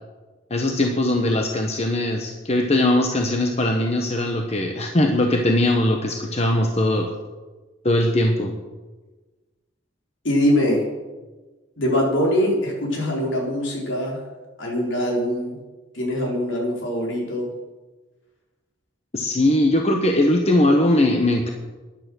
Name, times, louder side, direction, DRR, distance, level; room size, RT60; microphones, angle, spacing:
voice 1, 0.5-7.1 7.8-8.5 19.1-21.5, left 1 dB, 30° left, 3 dB, 1.1 m, -20 dB
voice 2, 10.2-10.8 11.8-14.2 14.6-15.6 15.9-17.5, equal, 65° left, -2 dB, 4.2 m, -22 dB
13.5 x 10.5 x 6.3 m, 1.2 s
head